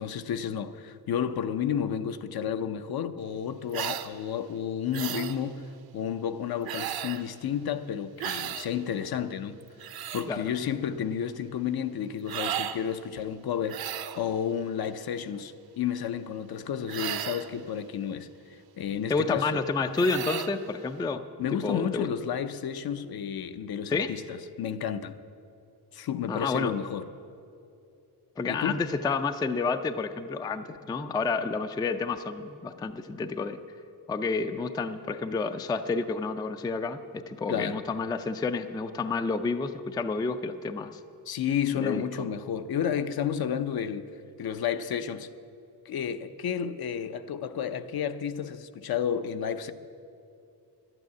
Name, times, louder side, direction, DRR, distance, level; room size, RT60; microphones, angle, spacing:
voice 1, 0.0-5.7 5.9-9.6 10.1-13.8 14.1-18.3 18.8-19.6 21.4-25.2 25.9-27.1 28.5-28.8 37.5-37.8 41.3-44.1 44.4-45.3 45.9-49.7, left 8 dB, 60° left, 0.7 m, -31 dB
sound 1, 3.7-4.1 4.9-5.4 6.7-7.2 8.2-8.7 9.6-10.3 12.3-12.8 13.7-14.2 16.9-17.5 19.9-20.5, right 10 dB, 60° right, 0.7 m, -34 dB
voice 2, 19.1-21.2 21.5-22.1 23.9-24.2 26.3-26.7 28.4-33.6 34.1-41.0 41.8-42.0, left 4 dB, 10° left, 0.3 m, -30 dB
12.0 x 9.1 x 9.3 m
wide cardioid pair, 155°, 41 cm